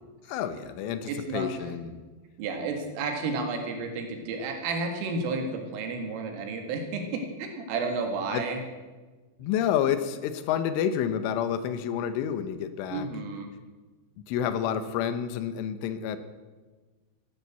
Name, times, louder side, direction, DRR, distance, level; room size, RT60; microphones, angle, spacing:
voice 1, 0.3-2.0 8.3-8.4 9.4-13.1 14.3-16.2, left 9 dB, 80° left, 11 dB, 3.3 m, -29 dB
voice 2, 1.1-1.5 2.4-8.6 9.4-9.5 12.9-13.5, right 3 dB, 80° right, 4 dB, 4.5 m, -32 dB
15.5 x 11.0 x 8.1 m, 1.3 s
omnidirectional pair, 5.8 m